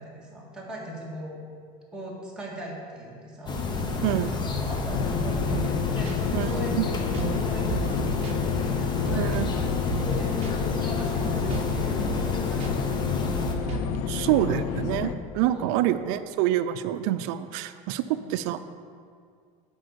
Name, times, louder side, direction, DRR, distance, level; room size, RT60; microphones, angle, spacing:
voice 1, 0.0-1.4 1.9-3.6 3.9-13.2 14.2-14.6 15.5-15.7 18.0-18.3, equal, 5° right, -5 dB, 1.9 m, -39 dB
sound 1, 3.5-13.5, left 3 dB, 25° left, 0.8 m, -30 dB
voice 2, 4.0-4.4 6.3-6.9 9.2-9.5 14.1-18.0 18.3-18.6, right 12 dB, 65° right, 10 dB, 0.5 m, -26 dB
sound 2, 4.9-15.1, left 8 dB, 70° left, 0.6 m, -30 dB
sound 3, 5.5-5.8 6.1-6.2 7.1-7.4 7.7-8.0 8.2-8.4 9.0-9.6 9.9-10.2 10.4-10.5 11.2-11.8 12.0-12.3 12.6-12.7 13.4-14.0, right 7 dB, 35° right, 1.0 m, -34 dB
7.9 x 5.3 x 6.8 m, 2.2 s
cardioid pair, 145°, 18 cm